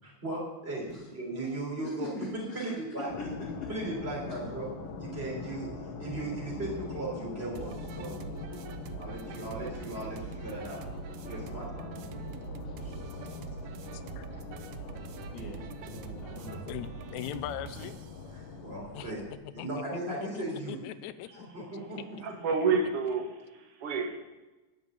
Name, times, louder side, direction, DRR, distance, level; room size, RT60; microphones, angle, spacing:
voice 1, 0.0-3.1 3.7-4.7 5.0-5.7 6.0-8.2 9.0-10.8 11.3-11.9 18.3-19.2 19.5-20.8 21.3-22.3, right 2 dB, 20° right, -3 dB, 3.5 m, -37 dB
voice 2, 2.0-2.7 3.2-3.7 8.1-8.4 12.7-12.9 15.3-16.7, left 2 dB, 35° left, -6 dB, 2.8 m, -41 dB
sound 1, 3.1-19.3, left 5 dB, 55° left, 1.9 m, -42 dB
sound 2, 7.6-18.1, right 9 dB, 90° right, 2.1 m, -44 dB
voice 3, 13.9-14.3 16.5-17.9 18.9-19.1 19.6-19.7 20.1-21.8, left 11 dB, 85° left, 13 dB, 1.9 m, -40 dB
voice 4, 22.2-24.2, right 5 dB, 55° right, 4 dB, 2.1 m, -29 dB
11.5 x 6.1 x 8.7 m, 1.1 s
omnidirectional pair, 3.4 m